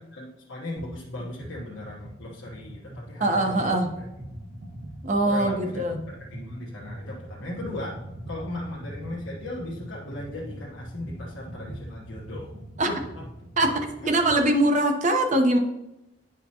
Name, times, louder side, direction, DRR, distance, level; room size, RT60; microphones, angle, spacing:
voice 1, 0.0-3.8 5.2-8.0 8.3-12.5 12.8-13.3 14.0-14.2, left 1 dB, 85° left, -5 dB, 1.1 m, -37 dB
sound 1, 0.8-0.9 1.2-14.5, equal, 85° right, 2.0 m, -42 dB
voice 2, 3.2-3.9 5.0-6.0 12.8-12.9 13.6-15.6, right 1 dB, 40° right, 5 dB, 0.9 m, -22 dB
10.0 x 4.9 x 2.8 m, 0.93 s
head